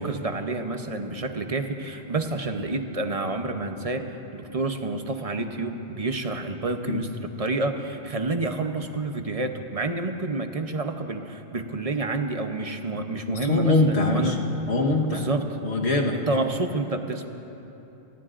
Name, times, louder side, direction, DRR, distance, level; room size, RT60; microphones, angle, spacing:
voice 1, 0.0-4.0 4.3-7.1 7.4-14.3 15.1-15.4 16.1-17.3, right 2 dB, 35° right, 6 dB, 0.8 m, -29 dB
voice 2, 13.3-14.4 14.7-15.2 15.6-16.2, left 2 dB, 70° left, 0 dB, 1.6 m, -23 dB
28.5 x 19.5 x 2.5 m, 3.0 s
omnidirectional pair, 1.1 m